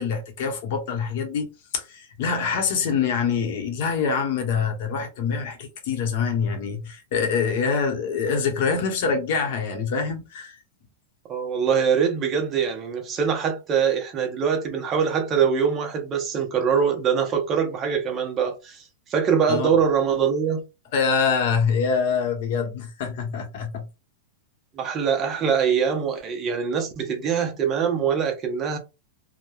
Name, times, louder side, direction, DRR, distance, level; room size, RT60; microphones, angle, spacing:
voice 1, 0.0-10.5 19.5-19.7 20.9-23.8, left 5 dB, 55° left, 0.8 m, -25 dB
voice 2, 11.3-18.8 19.1-20.6 24.7-28.8, right 7 dB, 25° right, 0.6 m, -23 dB
3.0 x 2.1 x 2.3 m
supercardioid pair, 155°, 0 cm